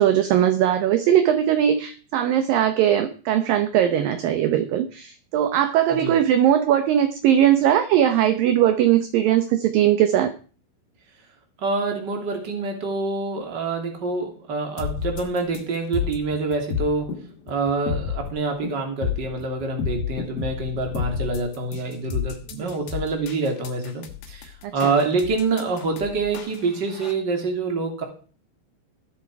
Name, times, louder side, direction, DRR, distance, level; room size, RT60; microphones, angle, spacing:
voice 1, 0.0-10.3 22.6-22.7 24.8-24.9, right 10 dB, 70° right, 8 dB, 2.3 m, -20 dB
voice 2, 11.6-17.1 17.5-28.0, right 3 dB, 30° right, 3 dB, 2.8 m, -26 dB
sound 1, 14.8-27.1, left 7 dB, 65° left, 3.2 m, -31 dB
20.5 x 7.4 x 4.8 m, 0.39 s
omnidirectional pair, 5.0 m